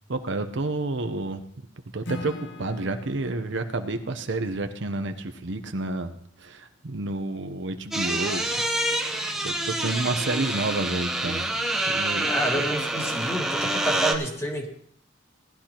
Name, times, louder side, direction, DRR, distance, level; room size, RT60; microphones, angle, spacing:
voice 1, 0.1-1.4 1.9-6.1 6.4-8.4 9.1-11.5 11.9-12.3 12.5-12.6, right 2 dB, 65° right, 7 dB, 0.7 m, -30 dB
Acoustic guitar / Strum, 2.0-5.2, left 2 dB, 60° left, 0.9 m, -42 dB
sound 1, 7.9-14.1, right 1 dB, ahead, 0.8 m, -27 dB
voice 2, 12.2-14.7, right 1 dB, 15° left, 0 dB, 1.7 m, -29 dB
18.0 x 11.5 x 2.9 m, 0.65 s
head